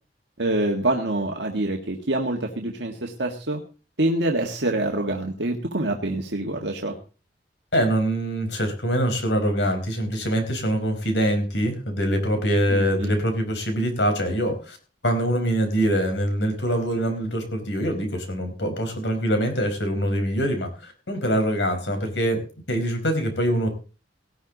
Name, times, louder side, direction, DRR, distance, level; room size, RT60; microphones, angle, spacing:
voice 1, 0.4-3.6 4.0-7.0 12.7-13.2, right 1 dB, 70° right, 2 dB, 1.7 m, -26 dB
voice 2, 7.7-14.8 15.0-22.4 22.7-23.7, equal, 70° left, 6 dB, 4.9 m, -24 dB
18.5 x 12.0 x 4.0 m, 0.35 s
head